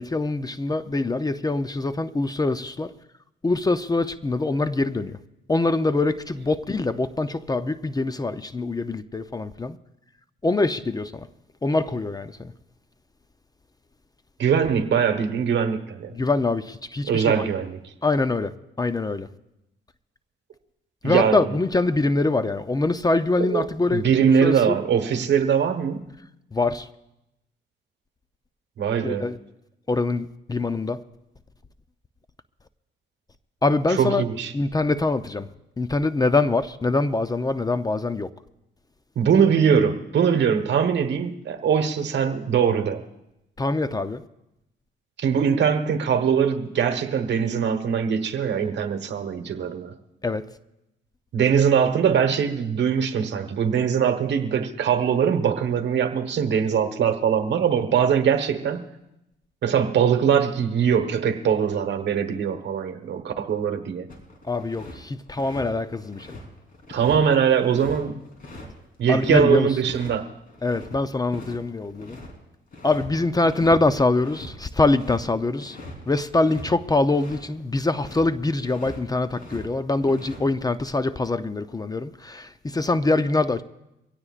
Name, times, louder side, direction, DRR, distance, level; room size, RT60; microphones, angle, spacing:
voice 1, 0.0-2.9 3.4-5.2 5.5-9.8 10.4-11.3 11.6-12.5 16.1-17.5 18.0-19.3 21.0-24.1 24.4-24.8 26.5-26.9 29.0-29.4 29.9-31.0 33.6-34.2 34.5-35.5 35.8-38.3 43.6-44.2 50.2-50.5 64.5-66.4 69.1-69.7 70.6-72.2 72.8-75.8 76.1-83.6, left 2 dB, 20° left, 0.6 m, -24 dB
voice 2, 14.4-16.1 17.1-17.9 21.0-21.6 23.4-26.0 28.8-29.3 33.9-34.5 39.1-43.0 45.2-49.9 51.3-58.8 59.6-64.1 66.9-68.2 69.0-70.2, right 7 dB, 60° right, 1.3 m, -22 dB
sound 1, 64.1-65.0 65.3-69.5 69.9-70.1 70.4-72.3 72.7-73.1 73.3-73.8 74.1-77.5 77.8-78.3 78.6-79.7 79.9-80.4, left 1 dB, 45° left, 3.6 m, -41 dB
23.5 x 17.0 x 2.5 m
cardioid pair, 90°, 20 cm